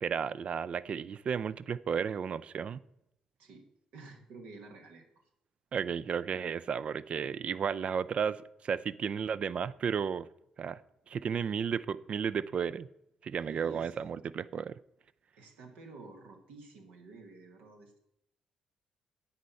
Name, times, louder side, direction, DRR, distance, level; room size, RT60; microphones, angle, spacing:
voice 1, 0.0-2.8 5.7-10.3 10.6-10.8 11.1-12.9 13.2-14.7, right 7 dB, 50° right, 0.3 m, -33 dB
voice 2, 3.4-5.2 13.4-13.9 15.4-18.0, right 3 dB, 75° right, 1.3 m, -51 dB
9.5 x 4.3 x 5.6 m
hypercardioid pair, 45°, 2 cm